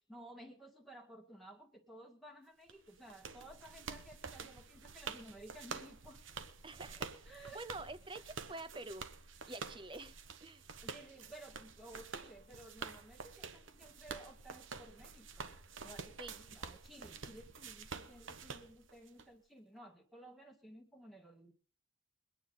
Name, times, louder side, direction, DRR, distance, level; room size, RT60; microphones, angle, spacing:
voice 1, 0.0-6.2 6.7-6.8 7.3-7.6 8.5-8.6 10.8-21.5, right 1 dB, ahead, 1 dB, 1.8 m, -55 dB
sound 1, 2.7-19.2, right 5 dB, 65° right, 1.1 m, -48 dB
voice 2, 6.6-9.1 9.5-10.6 16.2-16.4, right 2 dB, 25° right, 13 dB, 0.8 m, -48 dB
23.0 x 9.4 x 3.8 m, 0.40 s
head